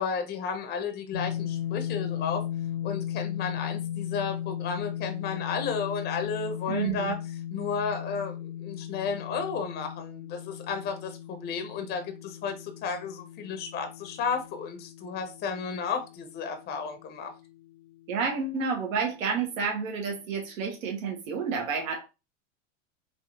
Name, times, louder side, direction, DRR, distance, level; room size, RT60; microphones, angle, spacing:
voice 1, 0.0-2.4 2.8-7.2 7.5-17.3, left 5 dB, 25° left, 0.7 m, -33 dB
sound 1, 1.1-17.1, left 10 dB, 70° left, 0.7 m, -36 dB
voice 2, 6.7-7.2 18.1-22.1, right 5 dB, 80° right, 1.4 m, -30 dB
4.0 x 2.6 x 2.9 m
supercardioid pair, 130°, 39 cm